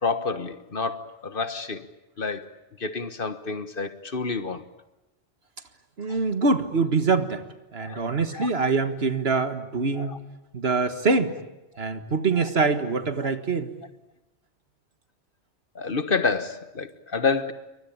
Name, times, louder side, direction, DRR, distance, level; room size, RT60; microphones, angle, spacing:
voice 1, 0.0-1.9 2.2-2.5 2.8-4.6 6.1-6.2 7.8-8.5 9.9-10.2 12.4-12.5 15.7-17.5, left 4 dB, 50° left, 1.5 m, -29 dB
voice 2, 6.0-7.4 7.7-10.1 10.5-11.3 11.8-13.7, right 4 dB, 60° right, 1.9 m, -24 dB
28.0 x 23.5 x 8.8 m
omnidirectional pair, 1.2 m